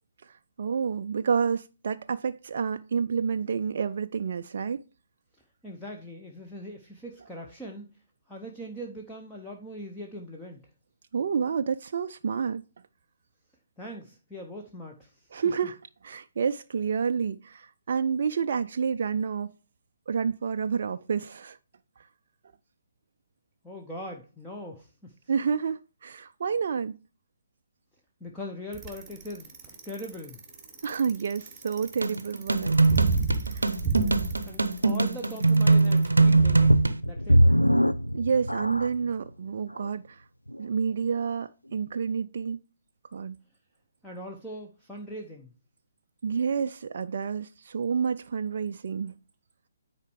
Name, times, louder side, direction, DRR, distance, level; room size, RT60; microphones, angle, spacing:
voice 1, 0.2-4.8 11.1-12.6 15.3-15.8 16.0-19.5 20.1-21.6 25.3-27.0 30.8-33.7 38.1-40.2 40.6-42.6 43.1-43.4 46.2-49.2, right 6 dB, 45° right, 0.3 m, -29 dB
voice 2, 5.6-7.9 8.3-10.7 13.8-15.3 23.6-25.2 28.2-30.4 34.5-37.4 44.0-45.5, equal, 5° left, 0.8 m, -41 dB
Bicycle, 28.7-36.8, right 4 dB, 10° right, 1.5 m, -31 dB
sound 1, 32.0-37.0, right 3 dB, 70° right, 0.6 m, -22 dB
sound 2, 36.7-39.1 39.8-39.9 40.5-40.6, equal, 85° left, 0.5 m, -22 dB
9.6 x 4.3 x 4.7 m
figure-of-eight pair, 135°, 0 cm